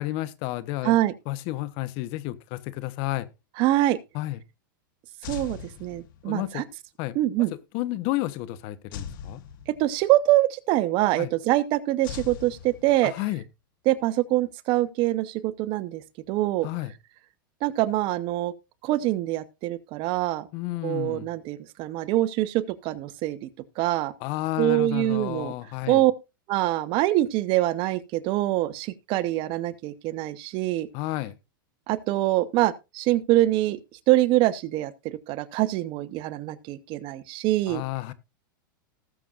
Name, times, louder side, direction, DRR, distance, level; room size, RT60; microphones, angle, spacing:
voice 1, 0.0-1.0 1.3-3.3 4.1-4.4 6.2-6.7 7.0-7.5 7.7-9.4 11.2-11.3 13.0-13.4 16.6-16.9 20.5-21.3 24.2-26.0 30.9-31.4 37.7-38.1, left 17 dB, 50° left, 1.1 m, -31 dB
voice 2, 3.6-4.0 5.3-6.6 7.1-7.5 9.8-13.1 13.8-16.0 16.3-16.7 17.6-18.5 18.8-20.5 20.8-23.5 23.8-24.1 24.6-25.5 25.9-26.1 26.5-30.9 31.9-33.8 34.1-37.8, right 16 dB, 45° right, 1.0 m, -24 dB
sound 1, 5.2-6.5 8.9-10.2 12.0-13.3, left 7 dB, 65° left, 1.6 m, -40 dB
19.0 x 7.0 x 2.5 m
hypercardioid pair, 125°, 12 cm